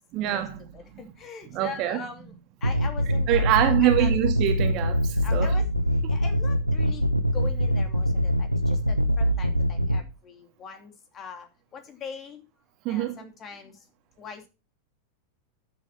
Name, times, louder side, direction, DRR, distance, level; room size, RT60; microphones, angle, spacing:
voice 1, 0.1-0.6 1.5-2.0 3.3-5.5 12.8-13.1, right 13 dB, 40° right, 2.2 m, -24 dB
voice 2, 0.7-2.3 2.6-4.1 5.2-5.7 6.1-7.1 7.3-11.5 11.7-12.4 12.9-13.7 14.2-14.5, left 5 dB, 30° left, 2.8 m, -42 dB
sound 1, 2.6-10.0, equal, 90° right, 0.9 m, -24 dB
13.5 x 7.2 x 4.3 m
figure-of-eight pair, 90°, 0 cm